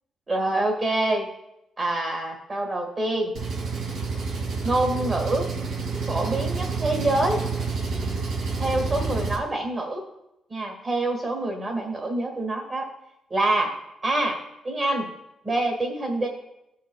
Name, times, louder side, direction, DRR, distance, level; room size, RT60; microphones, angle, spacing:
voice 1, 0.3-1.3 1.8-3.3 4.6-5.5 6.1-7.4 8.6-10.0 10.5-12.9 13.3-13.7 14.0-14.4 14.6-15.1 15.4-16.3, right 2 dB, 30° right, 1 dB, 1.6 m, -26 dB
Engine, 3.3-9.4, right 4 dB, 70° right, 1.8 m, -29 dB
16.0 x 5.7 x 2.4 m, 0.87 s
cardioid pair, 135°, 0 cm